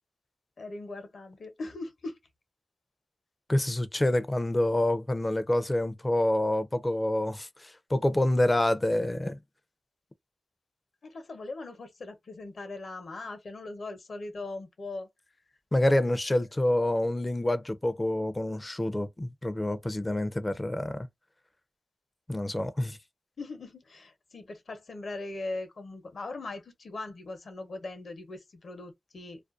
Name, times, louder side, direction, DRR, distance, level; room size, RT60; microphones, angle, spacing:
voice 1, 0.6-2.1 11.0-15.1 23.4-29.4, left 2 dB, 65° left, 0.8 m, -40 dB
voice 2, 3.5-9.4 15.7-21.1 22.3-23.0, left 1 dB, 25° left, 0.5 m, -27 dB
2.4 x 2.2 x 2.4 m
cardioid pair, 45°, 0 cm